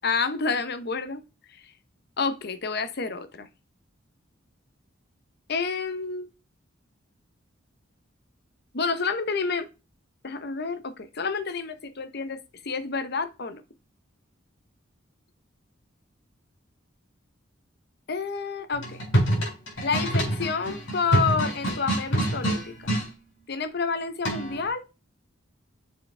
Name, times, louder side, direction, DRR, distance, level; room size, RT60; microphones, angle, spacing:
voice 1, 0.0-1.2 2.2-3.5 5.5-6.3 8.7-9.7 10.2-12.4 12.6-13.6 18.1-19.0 19.8-22.8 23.5-24.8, left 4 dB, 55° left, 0.8 m, -29 dB
sound 1, 18.7-23.1 24.2-24.7, right 1 dB, 70° left, 4.3 m, -26 dB
6.8 x 5.9 x 3.3 m
head